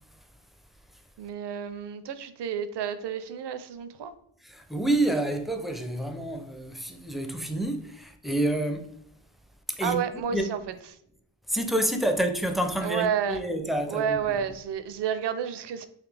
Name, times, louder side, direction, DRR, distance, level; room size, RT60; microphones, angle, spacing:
voice 1, 1.2-4.1 9.8-10.6 12.8-13.4 13.9-15.9, right 7 dB, 60° right, 0.6 m, -30 dB
voice 2, 4.4-8.9 9.7-10.0 10.3-10.5 11.5-14.4, right 1 dB, ahead, 0.4 m, -28 dB
4.1 x 2.7 x 3.3 m
cardioid pair, 80°, 48 cm